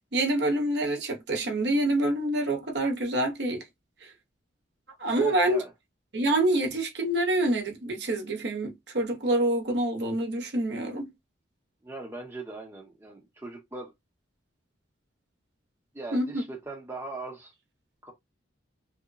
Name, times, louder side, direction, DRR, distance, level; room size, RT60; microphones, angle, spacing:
voice 1, 0.1-3.6 4.0-4.1 5.0-5.6 6.1-11.1 16.1-16.3, right 1 dB, 55° right, 0.7 m, -26 dB
voice 2, 5.1-5.7 11.8-13.9 15.9-17.5 18.0-18.1, right 2 dB, 10° right, 0.7 m, -39 dB
2.8 x 2.1 x 2.4 m
head